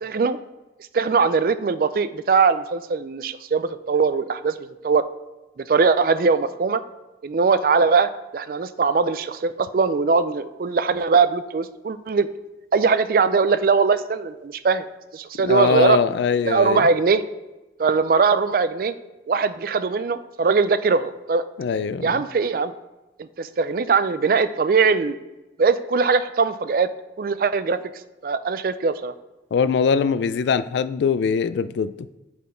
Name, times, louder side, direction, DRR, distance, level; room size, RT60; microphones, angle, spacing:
voice 1, 0.0-0.4 0.9-4.6 4.8-5.0 5.6-6.8 7.2-12.3 12.7-14.9 15.1-16.0 16.4-17.2 17.8-18.9 19.3-21.4 22.0-22.7 23.2-25.2 25.6-26.9 27.2-27.8 28.2-29.1, right 5 dB, 55° right, 13 dB, 0.4 m, -21 dB
voice 2, 15.4-16.9 21.6-22.2 29.5-32.1, left 6 dB, 75° left, 14 dB, 0.3 m, -22 dB
8.4 x 4.3 x 4.3 m, 1.0 s
head